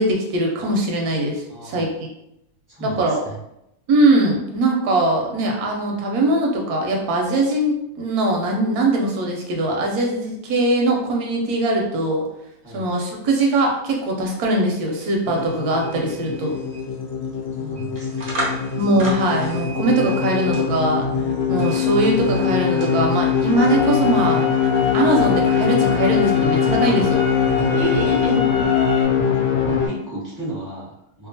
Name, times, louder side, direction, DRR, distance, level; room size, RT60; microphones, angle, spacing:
voice 1, 0.0-1.9 2.8-3.2 3.9-12.2 12.7-16.5 18.8-21.1 21.5-24.4 24.9-27.2, right 1 dB, 80° right, 0 dB, 1.1 m, -21 dB
voice 2, 1.5-1.9 2.7-3.4 12.6-12.9 17.5-18.3 29.6-31.3, right 1 dB, 15° left, -9 dB, 1.0 m, -35 dB
sound 1, 14.9-28.4, right 2 dB, 60° right, 0.4 m, -34 dB
sound 2, 15.2-29.9, left 7 dB, 75° left, 1.0 m, -22 dB
sound 3, 23.5-29.0, left 6 dB, 40° left, 1.1 m, -27 dB
2.8 x 2.3 x 2.7 m, 0.82 s
omnidirectional pair, 1.6 m